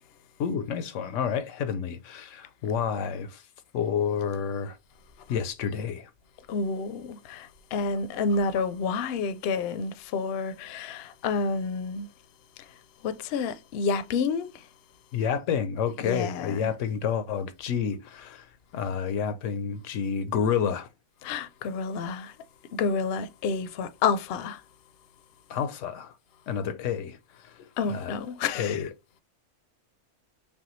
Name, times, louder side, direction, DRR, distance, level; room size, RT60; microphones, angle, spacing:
voice 1, 0.4-3.4 3.7-4.8 5.3-6.1 15.1-18.4 18.7-20.9 25.5-26.1 26.5-27.2 27.4-28.2 28.5-28.9, left 7 dB, 85° left, 0.9 m, -29 dB
voice 2, 6.5-12.1 13.0-14.5 16.0-16.7 21.2-22.3 22.7-24.6 27.8-28.8, left 4 dB, 65° left, 0.7 m, -29 dB
5.4 x 2.2 x 3.0 m
omnidirectional pair, 1.2 m